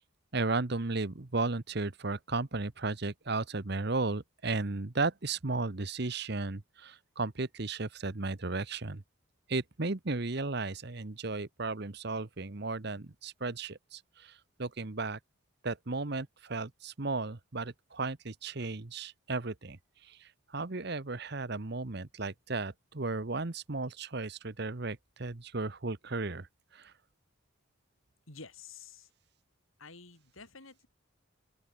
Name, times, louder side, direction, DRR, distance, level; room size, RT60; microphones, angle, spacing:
voice 1, 0.3-9.0 9.5-15.2 15.6-19.8 20.0-26.5 26.7-26.9, right 3 dB, 50° right, 1.1 m, -35 dB
voice 2, 28.3-29.1 29.8-30.9, left 4 dB, 75° left, 4.6 m, -50 dB
open air
head